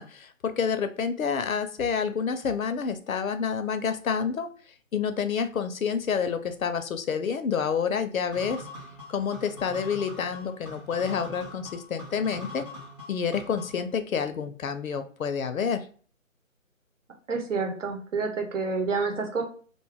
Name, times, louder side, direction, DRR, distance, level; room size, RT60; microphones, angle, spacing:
voice 1, 0.0-4.5 4.9-8.7 9.1-12.6 13.1-15.9, left 6 dB, 80° left, 9 dB, 0.6 m, -28 dB
sound 1, 8.3-13.9, left 2 dB, 10° left, 0.6 m, -43 dB
voice 2, 17.3-19.4, right 4 dB, 65° right, 3 dB, 0.9 m, -28 dB
2.5 x 2.3 x 3.4 m, 0.42 s
figure-of-eight pair, 150°, 41 cm